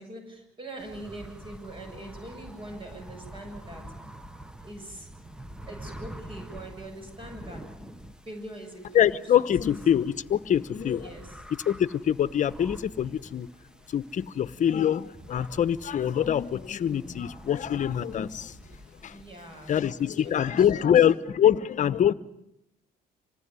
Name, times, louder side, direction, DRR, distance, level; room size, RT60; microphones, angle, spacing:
voice 1, 0.0-3.8 4.6-5.1 5.7-7.6 8.3-9.7 10.9-11.3 19.1-21.1, right 1 dB, 30° right, 7.6 m, -43 dB
sound 1, 0.8-20.4, right 1 dB, 5° right, 1.2 m, -46 dB
voice 2, 8.9-11.1 11.7-13.5 13.9-18.5 19.0-19.2 19.7-22.1, left 9 dB, 50° left, 1.1 m, -24 dB
26.5 x 19.0 x 9.7 m
cardioid pair, 110°, 17 cm